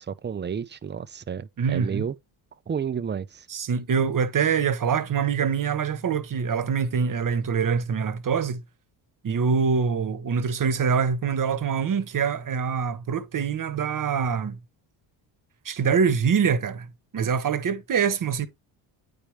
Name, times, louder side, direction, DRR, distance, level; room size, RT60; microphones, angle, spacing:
voice 1, 0.0-2.1 2.7-3.5, right 7 dB, 20° right, 0.6 m, -31 dB
voice 2, 1.6-2.0 3.5-8.6 9.2-14.6 15.6-16.9 17.1-18.5, right 6 dB, 40° right, 1.3 m, -24 dB
8.9 x 5.2 x 3.2 m
supercardioid pair, 75°, 49 cm